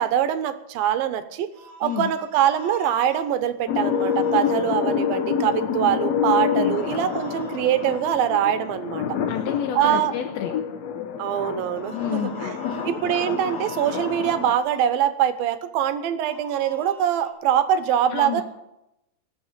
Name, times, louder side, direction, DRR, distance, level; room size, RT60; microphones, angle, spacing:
voice 1, 0.0-1.5 1.8-9.0 9.8-10.1 11.2-12.5 13.0-18.4, right 10 dB, 85° right, 11 dB, 2.7 m, -23 dB
sound 1, 1.5-3.3 3.8-4.5 6.7-8.3 11.7-14.8 16.2-17.3, equal, 25° right, 1.8 m, -43 dB
sound 2, 3.7-14.5, left 7 dB, 65° left, 1.8 m, -27 dB
voice 2, 6.3-6.8 9.3-10.5 11.9-12.3 12.6-12.8 18.1-18.4, left 9 dB, 85° left, 4 dB, 2.8 m, -29 dB
19.5 x 7.0 x 7.4 m, 0.87 s
omnidirectional pair, 4.2 m